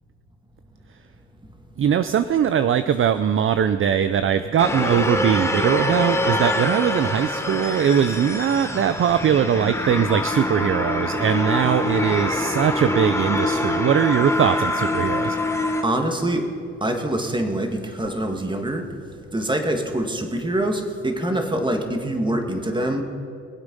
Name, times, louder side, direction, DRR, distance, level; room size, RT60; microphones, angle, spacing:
voice 1, 1.8-15.4, right 8 dB, 45° right, 11 dB, 0.5 m, -21 dB
sound 1, 4.6-15.8, left 1 dB, 10° left, 1.5 m, -25 dB
voice 2, 15.8-16.5 16.8-18.8 19.3-23.0, right 1 dB, 15° right, 4 dB, 1.9 m, -24 dB
22.5 x 8.0 x 5.4 m, 2.3 s
cardioid pair, 90°, 30 cm